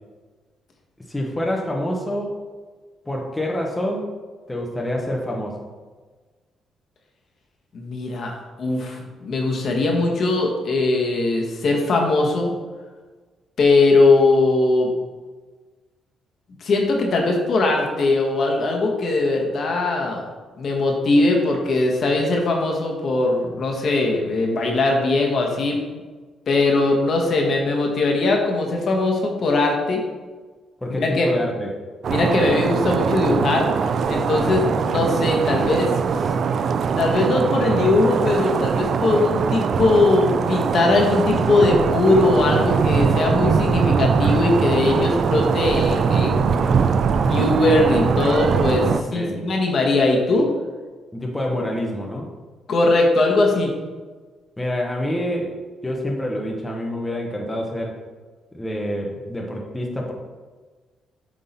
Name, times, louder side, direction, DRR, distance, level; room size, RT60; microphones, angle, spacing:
voice 1, 1.1-2.4 3.1-4.1 4.5-5.7 30.8-31.7 34.4-34.8 35.5-35.7 48.9-49.4 51.1-52.3 54.6-55.5 55.8-58.0 58.5-60.1, left 1 dB, 10° left, 0 dB, 1.0 m, -27 dB
voice 2, 7.7-12.5 13.6-14.9 16.6-20.2 20.6-25.8 26.5-30.0 31.0-31.3 32.1-33.7 34.1-36.2 37.0-46.7 47.2-50.5 52.7-53.7, left 2 dB, 55° left, 1 dB, 1.3 m, -20 dB
sound 1, 32.0-49.0, right 6 dB, 55° right, 0.3 m, -21 dB
7.6 x 3.7 x 4.2 m, 1.4 s
cardioid pair, 90°, 0 cm